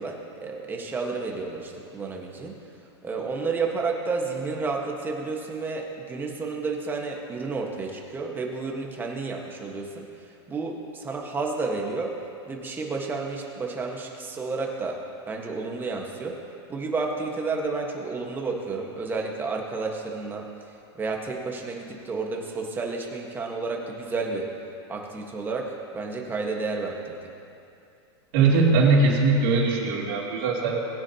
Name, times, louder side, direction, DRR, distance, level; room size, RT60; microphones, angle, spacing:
voice 1, 0.0-2.6 3.0-10.1 10.5-12.1 12.5-15.0 15.3-16.4 16.7-20.5 20.9-24.5 24.9-27.3, right 4 dB, 15° right, 0 dB, 1.4 m, -31 dB
voice 2, 28.3-30.8, right 3 dB, 55° right, -3 dB, 2.9 m, -20 dB
20.0 x 9.5 x 2.9 m, 2.6 s
supercardioid pair, 140°, 14 cm